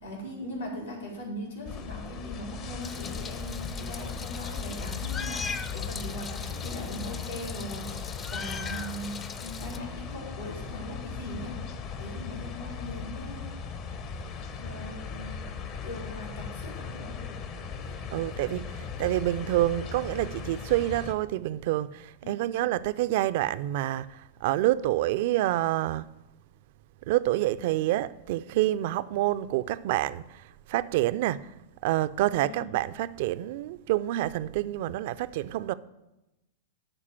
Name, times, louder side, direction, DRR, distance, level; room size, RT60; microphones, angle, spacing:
voice 1, 0.0-11.6 12.0-13.4 14.6-15.4 15.8-17.2 22.2-22.5 32.4-32.7, equal, 75° left, 3.9 m, -40 dB
sound 1, 1.6-21.1, left 6 dB, 40° left, 0.9 m, -38 dB
Meow, 2.8-9.8, left 5 dB, 25° left, 0.6 m, -40 dB
voice 2, 18.1-26.1 27.1-31.5 31.8-35.7, right 15 dB, 50° right, 0.4 m, -27 dB
12.0 x 4.2 x 7.3 m
figure-of-eight pair, 95°, 0 cm